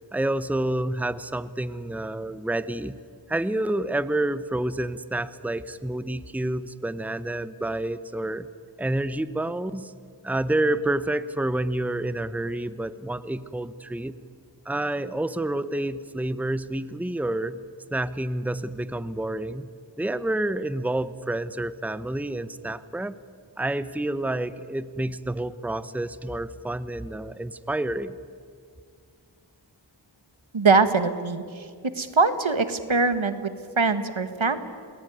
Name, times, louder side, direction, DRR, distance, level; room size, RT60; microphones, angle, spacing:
voice 1, 0.1-2.9 3.3-8.5 8.8-9.9 10.2-14.1 14.6-17.6 17.9-19.7 20.0-23.1 23.6-28.2, right 1 dB, 5° right, 14 dB, 0.8 m, -28 dB
voice 2, 30.5-31.7 31.9-34.6, right 4 dB, 80° right, 11 dB, 1.6 m, -22 dB
28.5 x 20.0 x 9.5 m, 2.1 s
wide cardioid pair, 50°, 46 cm